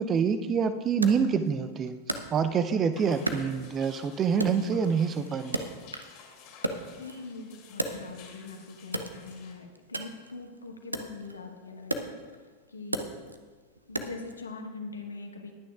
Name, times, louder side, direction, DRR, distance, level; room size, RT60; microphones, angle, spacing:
voice 1, 0.0-5.6, right 6 dB, 25° right, 11 dB, 0.5 m, -26 dB
Wood, 1.0-2.8 3.3-4.0 4.4-6.2 6.5-8.4 8.9-14.4, right 1 dB, 85° right, 0.7 m, -36 dB
sound 1, 2.9-9.5, left 6 dB, 45° left, 2.5 m, -53 dB
voice 2, 7.0-12.1 12.7-13.1 13.9-15.5, left 3 dB, 75° left, 3 dB, 1.4 m, -42 dB
20.5 x 9.0 x 2.4 m, 1.5 s
figure-of-eight pair, 90°, 0 cm